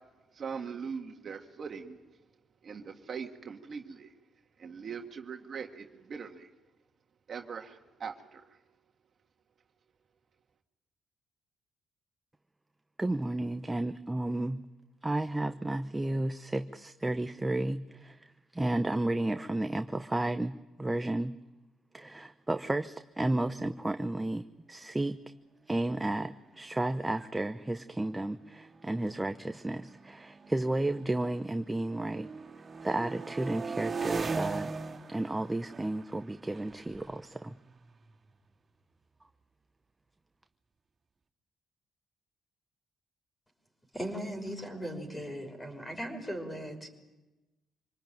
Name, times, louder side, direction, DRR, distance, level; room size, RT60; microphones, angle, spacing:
voice 1, 0.3-2.0 2.6-4.1 4.6-6.5 7.3-8.4, right 6 dB, 50° right, 3 dB, 1.8 m, -41 dB
voice 2, 13.0-14.6 15.0-18.3 18.5-21.3 21.9-25.2 25.7-32.3 32.8-37.5, right 1 dB, 15° right, 9 dB, 0.8 m, -32 dB
sound 1, 26.4-26.8 27.6-31.5 31.8-38.5, right 4 dB, 35° right, 3.2 m, -40 dB
voice 3, 43.9-46.9, equal, 15° left, 4 dB, 5.9 m, -38 dB
26.0 x 20.0 x 9.2 m, 1.1 s
cardioid pair, 90°, 0 cm